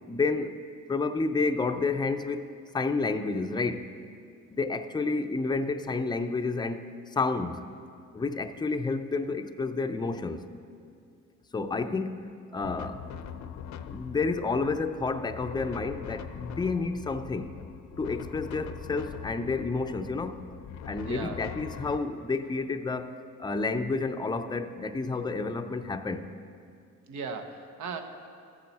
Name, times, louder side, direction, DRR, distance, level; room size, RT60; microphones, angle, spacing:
voice 1, 0.1-0.6 0.9-3.9 4.5-7.7 8.1-10.4 11.5-13.0 13.9-17.5 18.0-20.4 20.9-26.3, left 3 dB, 15° left, 9 dB, 0.5 m, -30 dB
sound 1, 12.6-22.0, left 8 dB, 65° left, 0.6 m, -42 dB
voice 2, 21.0-21.4 27.1-28.0, right 5 dB, 80° right, 6 dB, 1.0 m, -37 dB
14.0 x 7.7 x 4.2 m, 2.4 s
cardioid pair, 90°, 30 cm